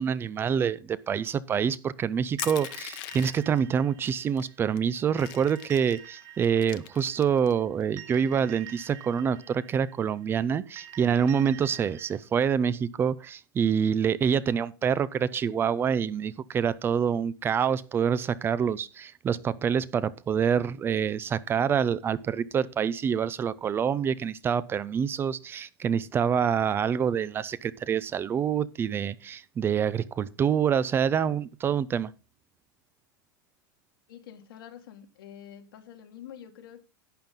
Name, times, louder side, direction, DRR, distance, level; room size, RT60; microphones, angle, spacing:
voice 1, 0.0-32.1, right 7 dB, 20° right, 0.5 m, -26 dB
Crushing, 2.4-3.6 4.4-4.5 4.8-6.0 6.4-7.5, left 17 dB, 45° left, 0.8 m, -39 dB
sound 1, 2.4-12.2, right 11 dB, 45° right, 3.2 m, -48 dB
voice 2, 34.1-36.8, left 9 dB, 80° left, 2.0 m, -47 dB
11.5 x 8.9 x 3.7 m
supercardioid pair, 145°, 12 cm